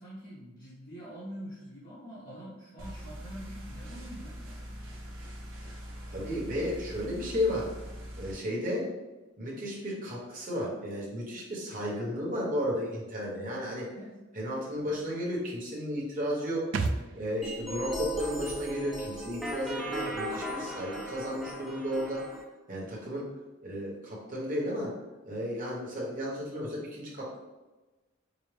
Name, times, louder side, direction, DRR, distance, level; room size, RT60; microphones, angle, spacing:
voice 1, 0.0-4.6 6.2-6.4 13.9-14.1, equal, 55° left, -10 dB, 1.1 m, -45 dB
sound 1, 2.8-8.3, equal, 85° right, 0.9 m, -43 dB
voice 2, 6.1-7.7 8.2-8.9 9.4-13.9 14.3-16.7 17.1-22.3 22.7-23.3 23.6-24.9 25.2-27.4, equal, 45° right, -4 dB, 1.0 m, -33 dB
sound 2, 16.7-20.3 20.5-20.6, right 3 dB, 65° right, 0.3 m, -37 dB
sound 3, 17.4-22.4, equal, ahead, 0.4 m, -37 dB
4.9 x 2.0 x 3.3 m, 1.1 s
head